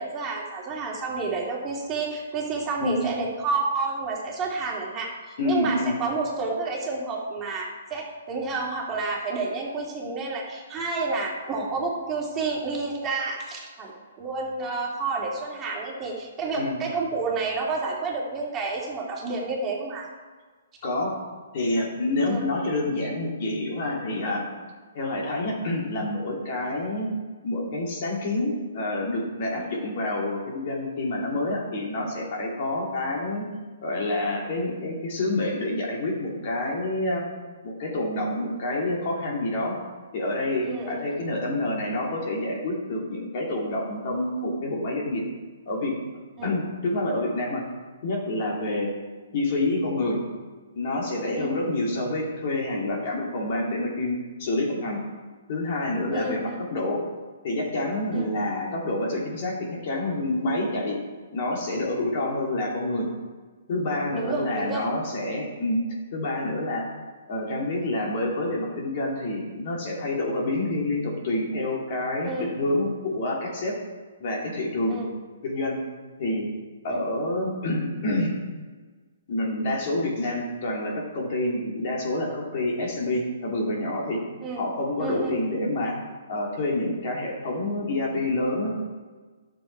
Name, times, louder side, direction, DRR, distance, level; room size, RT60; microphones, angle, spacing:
voice 1, 0.0-20.1 22.2-22.4 29.5-30.0 40.6-41.0 46.4-46.5 51.4-51.5 56.1-56.6 58.1-58.3 64.1-64.8 72.2-72.5 74.9-75.1 76.9-77.0 84.4-84.6 85.0-85.4, right 3 dB, 20° right, -3 dB, 2.7 m, -30 dB
voice 2, 5.4-6.0 16.6-16.8 20.8-21.2 21.5-24.5 24.9-27.1 27.4-33.4 33.8-37.2 37.6-39.8 40.1-45.2 45.7-46.0 46.4-47.6 48.0-48.9 49.3-50.2 50.7-55.0 55.5-57.0 57.4-61.0 61.3-63.1 63.7-65.8 66.1-66.8 67.3-73.7 74.2-75.0 75.4-75.8 76.2-76.5 76.8-78.3 79.3-84.2 84.6-86.0 86.3-88.7, left 2 dB, 45° left, -2 dB, 2.9 m, -27 dB
11.5 x 7.1 x 4.7 m, 1.4 s
figure-of-eight pair, 130°, 0 cm